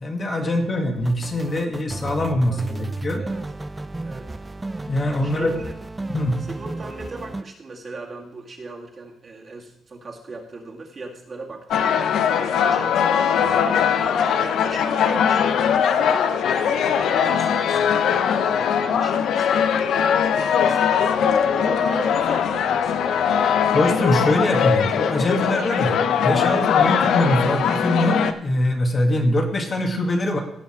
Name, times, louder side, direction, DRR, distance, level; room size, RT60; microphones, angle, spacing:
voice 1, 0.0-3.2 4.9-5.6 6.1-6.4 23.7-30.4, left 1 dB, 35° left, 3 dB, 1.7 m, -23 dB
sound 1, 1.0-7.4, right 2 dB, 15° right, 0.5 m, -33 dB
voice 2, 2.5-2.9 3.2-3.4 4.0-4.4 5.2-5.7 6.5-11.8 12.4-18.0 18.4-21.1 21.5-23.2 26.8-27.0, right 3 dB, 40° right, 0 dB, 2.0 m, -38 dB
sound 2, 11.7-28.3, left 7 dB, 75° left, 0.6 m, -20 dB
16.5 x 5.8 x 4.4 m, 0.75 s
cardioid pair, 100°, 0 cm